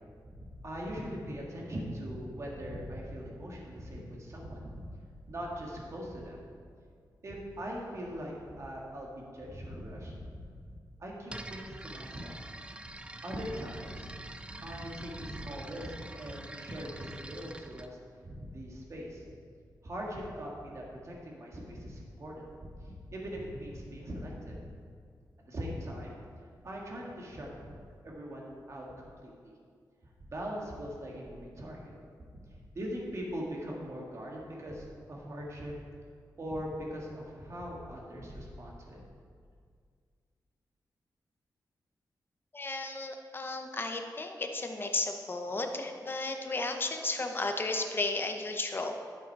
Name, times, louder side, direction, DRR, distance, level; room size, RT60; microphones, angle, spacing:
voice 1, 0.2-4.9 5.3-6.4 7.2-12.4 12.8-12.9 13.2-14.2 14.5-18.0 18.2-19.2 19.8-24.7 25.5-26.2 26.6-27.8 28.0-29.3 30.2-31.9 32.3-35.7 36.4-39.0, equal, 40° right, -2 dB, 1.8 m, -41 dB
sound 1, 11.3-17.9, right 2 dB, 15° right, 0.4 m, -46 dB
voice 2, 42.5-48.9, left 2 dB, 30° left, 5 dB, 0.8 m, -34 dB
11.5 x 6.6 x 4.7 m, 2.1 s
wide cardioid pair, 140°, 7 cm